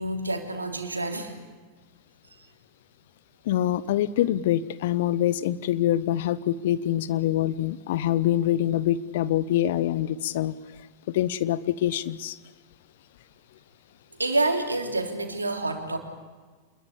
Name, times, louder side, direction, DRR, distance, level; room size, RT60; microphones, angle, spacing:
voice 1, 0.0-1.3 14.2-16.0, right 2 dB, 80° right, 3.4 m, -28 dB
voice 2, 3.4-10.5 11.1-12.4, left 12 dB, 55° left, 1.0 m, -25 dB
27.5 x 21.5 x 8.6 m
figure-of-eight pair, 90°, 0 cm